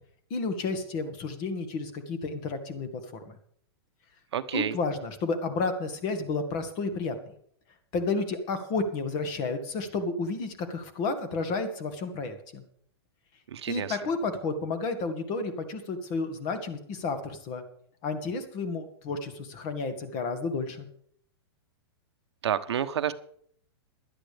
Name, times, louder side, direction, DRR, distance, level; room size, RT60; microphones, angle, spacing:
voice 1, 0.3-3.4 4.5-7.2 7.9-12.6 13.7-17.6 18.0-20.9, left 3 dB, 30° left, 8 dB, 1.8 m, -31 dB
voice 2, 4.3-4.8 13.5-13.9 22.4-23.1, right 9 dB, 85° right, 10 dB, 1.0 m, -29 dB
17.0 x 11.5 x 3.5 m, 0.63 s
hypercardioid pair, 160°, 14 cm